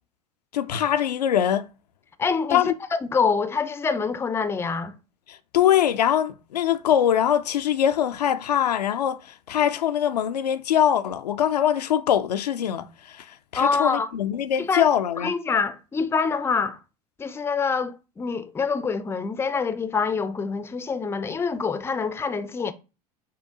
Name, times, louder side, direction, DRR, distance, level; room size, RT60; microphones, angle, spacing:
voice 1, 0.5-1.7 2.5-2.7 5.3-15.3, left 10 dB, 85° left, 0.4 m, -23 dB
voice 2, 2.2-2.6 2.9-4.9 13.5-14.1 14.6-14.9 15.2-16.8 17.2-22.7, left 5 dB, 10° left, 0.4 m, -25 dB
5.5 x 2.1 x 3.6 m
hypercardioid pair, 80°, 20 cm